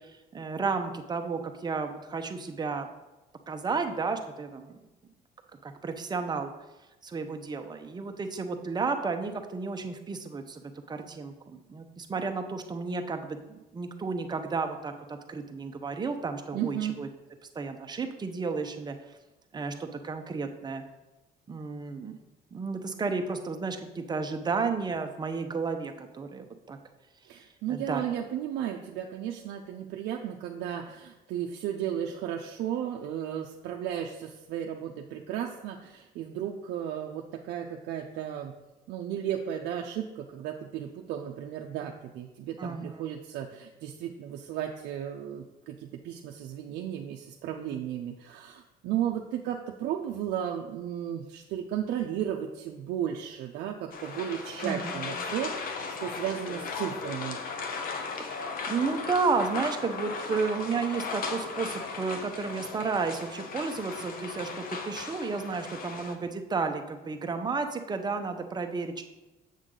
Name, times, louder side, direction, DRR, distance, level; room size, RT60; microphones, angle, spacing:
voice 1, 0.3-2.9 3.5-4.8 5.6-6.5 7.0-17.1 17.5-19.0 19.5-20.8 21.5-22.2 22.5-26.8 27.7-28.0 42.6-43.1 54.6-55.1 58.2-69.0, right 4 dB, 25° right, 6 dB, 0.7 m, -32 dB
voice 2, 16.5-17.0 27.3-38.6 38.9-57.4, right 10 dB, 80° right, 1 dB, 0.6 m, -34 dB
sound 1, 53.9-66.2, left 4 dB, 60° left, 0.9 m, -37 dB
7.3 x 6.3 x 3.8 m, 1.1 s
cardioid pair, 110°, 17 cm